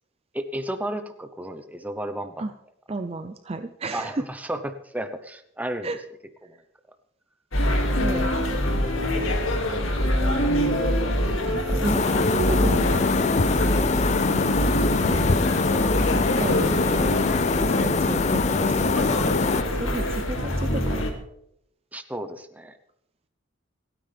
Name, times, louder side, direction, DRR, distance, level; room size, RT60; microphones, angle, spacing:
voice 1, 0.3-2.4 3.9-5.9 6.4-6.5 21.9-22.8, right 1 dB, 10° right, 8 dB, 0.9 m, -33 dB
voice 2, 2.9-4.2 5.8-6.0 8.0-8.6 10.5-10.9 11.5-13.1 13.8-14.7 15.0-19.3 19.8-21.0, right 2 dB, 30° right, 9 dB, 0.5 m, -33 dB
sound 1, 7.5-21.1, equal, 85° left, 2.4 m, -25 dB
sound 2, 11.8-19.6, left 4 dB, 35° left, 0.4 m, -23 dB
28.5 x 9.5 x 3.5 m, 0.77 s
head